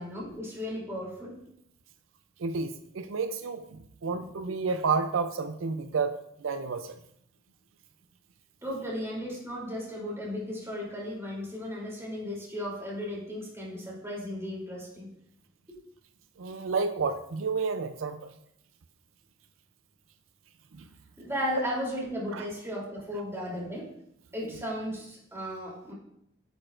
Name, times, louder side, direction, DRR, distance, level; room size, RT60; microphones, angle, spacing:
voice 1, 0.0-1.3 8.6-15.1 15.7-15.8 21.2-23.9 24.3-25.9, equal, 15° right, -4 dB, 3.1 m, -35 dB
voice 2, 2.4-6.1 6.4-7.0 16.4-18.3 20.7-20.8 22.3-22.5, right 4 dB, 90° right, 8 dB, 0.5 m, -30 dB
10.0 x 6.7 x 2.5 m, 0.75 s
head